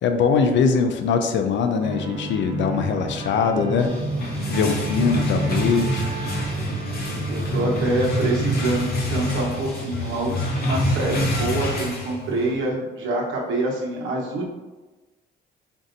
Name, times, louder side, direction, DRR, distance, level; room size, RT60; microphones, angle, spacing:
voice 1, 0.0-3.9 4.5-6.1, left 5 dB, 65° left, 6 dB, 0.5 m, -22 dB
sound 1, 1.8-8.8, right 3 dB, 25° right, 0.8 m, -31 dB
sound 2, 3.8-10.9, equal, 5° left, 1.5 m, -39 dB
sound 3, 4.0-12.6, left 1 dB, 50° left, 0.9 m, -27 dB
voice 2, 7.3-10.3 10.6-14.5, right 2 dB, 75° right, -2 dB, 1.0 m, -26 dB
5.1 x 2.6 x 2.6 m, 1.2 s
cardioid pair, 90°, 20 cm